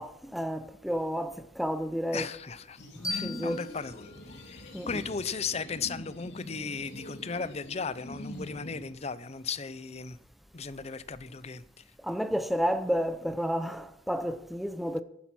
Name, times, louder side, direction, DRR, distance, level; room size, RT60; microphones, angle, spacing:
voice 1, 0.0-2.3 3.2-3.6 4.7-5.0 12.0-15.0, equal, ahead, 0.5 m, -31 dB
voice 2, 2.1-2.8 3.1-4.1 4.5-10.2 10.5-11.8, left 5 dB, 35° left, 0.6 m, -36 dB
sound 1, 2.8-8.9, left 1 dB, 70° left, 2.6 m, -44 dB
sound 2, 3.0-5.8, left 2 dB, 15° left, 4.5 m, -41 dB
11.5 x 10.5 x 6.0 m
head